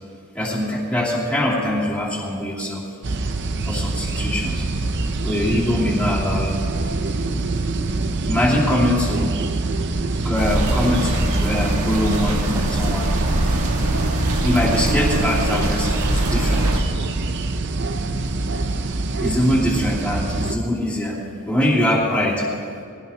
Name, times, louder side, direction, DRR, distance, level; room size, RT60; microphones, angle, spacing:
voice 1, 0.3-2.9 3.7-4.7 5.2-6.6 8.2-9.3 10.2-13.1 14.4-16.8 19.2-22.5, left 1 dB, 5° left, -5 dB, 3.0 m, -22 dB
sound 1, 3.0-20.6, right 3 dB, 50° right, 0.7 m, -25 dB
sound 2, 10.4-16.8, right 1 dB, 80° right, 1.7 m, -23 dB
22.5 x 17.0 x 2.9 m, 2.4 s
head